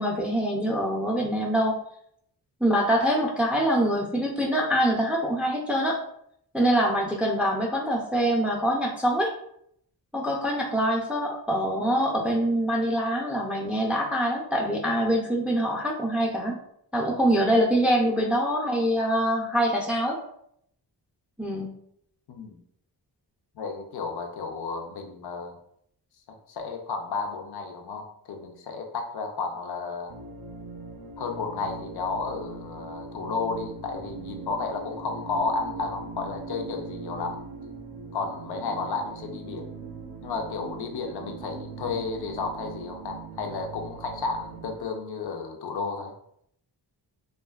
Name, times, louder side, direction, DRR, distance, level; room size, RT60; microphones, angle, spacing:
voice 1, 0.0-1.7 2.6-6.0 6.5-9.3 10.1-16.5 16.9-20.2 21.4-21.7, equal, 5° right, -1 dB, 0.4 m, -24 dB
voice 2, 22.3-22.6 23.6-25.6 26.5-30.1 31.2-37.4 38.1-39.6 40.2-46.1, left 4 dB, 60° left, 3 dB, 0.6 m, -32 dB
sound 1, 30.1-44.9, right 4 dB, 55° right, 0.6 m, -40 dB
2.6 x 2.3 x 2.3 m, 0.71 s
cardioid pair, 75°, 44 cm